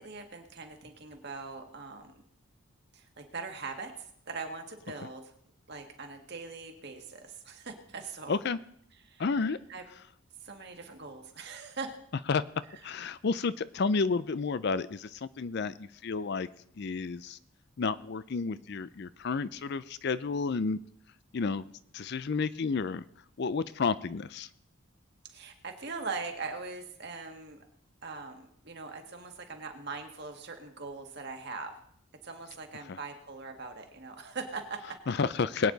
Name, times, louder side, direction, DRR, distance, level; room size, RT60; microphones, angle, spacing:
voice 1, 0.0-2.2 2.9-5.3 5.7-8.4 9.1-9.8 10.4-11.9 25.3-27.6 28.0-31.7 32.2-35.0, right 4 dB, 50° right, 4 dB, 1.8 m, -41 dB
voice 2, 8.3-8.6 9.2-9.6 12.3-12.4 12.8-16.5 16.8-17.4 17.8-20.8 21.3-21.6 21.9-23.0 23.4-24.5 32.9-33.0 35.1-35.7, left 4 dB, 50° left, 16 dB, 0.4 m, -31 dB
21.5 x 9.2 x 4.0 m, 0.68 s
head